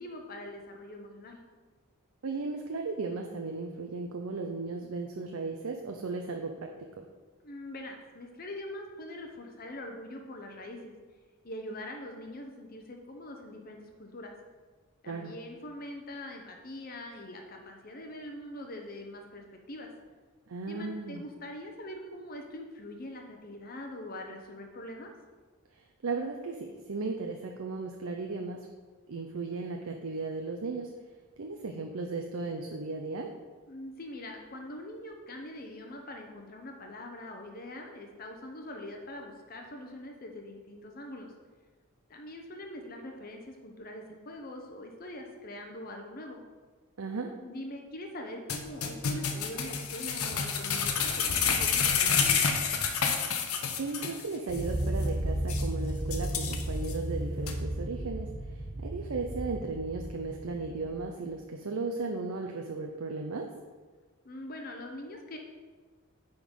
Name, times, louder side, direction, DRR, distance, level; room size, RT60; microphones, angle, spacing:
voice 1, 0.0-1.4 7.4-10.9 11.4-14.3 15.0-19.9 20.7-25.1 33.7-41.3 42.1-46.4 47.4-52.3 64.2-65.4, left 1 dB, 40° left, 3 dB, 0.8 m, -43 dB
voice 2, 2.2-7.1 15.1-15.3 20.5-21.2 25.7-28.7 29.1-30.9 31.4-33.3 47.0-47.3 53.8-63.5, right 3 dB, 75° right, 2 dB, 0.6 m, -36 dB
sound 1, 48.5-54.2 54.5-54.6 55.0-55.1 55.5-55.6 56.1-56.9 57.5-57.6, left 6 dB, 80° left, 0.8 m, -29 dB
sound 2, 54.5-61.0, right 1 dB, 40° right, 1.0 m, -34 dB
9.6 x 3.9 x 5.3 m, 1.4 s
head